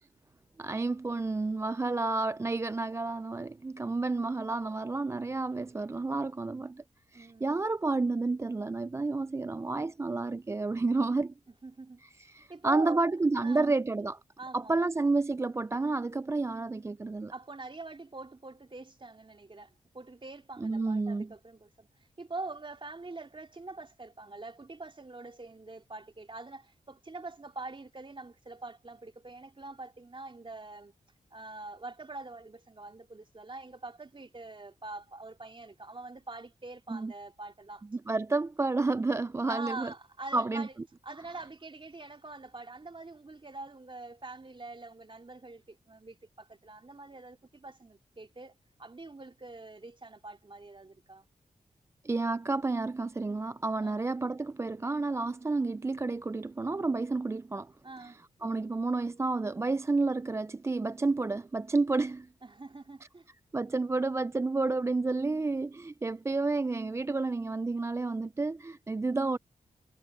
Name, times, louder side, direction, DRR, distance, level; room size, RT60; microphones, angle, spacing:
voice 1, 0.6-6.8 7.1-11.3 12.0-14.2 14.5-17.3 20.6-21.3 36.9-37.1 37.9-39.9 40.3-40.7 52.0-57.7 58.0-62.3 63.5-69.4, right 3 dB, 20° right, 0.3 m, -30 dB
voice 2, 7.1-7.6 11.6-12.0 12.5-13.1 13.4-13.7 14.4-14.9 17.3-21.9 22.2-30.9 31.3-37.8 39.5-40.7 41.0-51.3 53.8-54.1 57.8-58.2 62.4-63.3, right 3 dB, 35° right, 3.0 m, -44 dB
cardioid pair, 50°, 15 cm